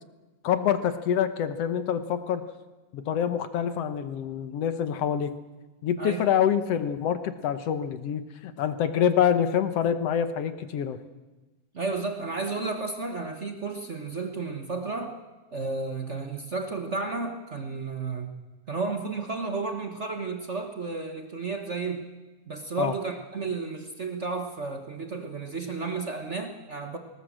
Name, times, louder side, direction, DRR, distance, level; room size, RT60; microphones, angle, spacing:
voice 1, 0.4-2.5 2.9-5.4 5.8-11.0 22.8-22.9, left 8 dB, 65° left, 11 dB, 1.9 m, -26 dB
voice 2, 11.7-15.2 15.5-18.3 18.7-22.1 22.5-27.0, right 4 dB, 50° right, 5 dB, 0.8 m, -32 dB
19.5 x 19.0 x 7.5 m, 1.2 s
omnidirectional pair, 3.4 m